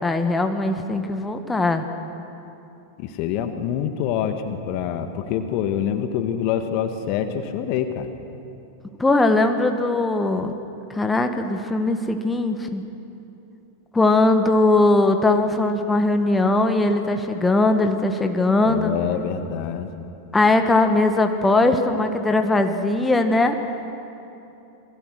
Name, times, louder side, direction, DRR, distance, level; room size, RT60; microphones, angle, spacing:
voice 1, 0.0-1.8 9.0-10.5 10.9-12.8 13.9-18.9 20.3-23.6, left 2 dB, 10° left, 6 dB, 1.6 m, -20 dB
voice 2, 3.0-8.1 18.6-19.9, left 9 dB, 45° left, 8 dB, 1.8 m, -26 dB
28.0 x 23.0 x 6.5 m, 2.8 s
figure-of-eight pair, 90°, 0 cm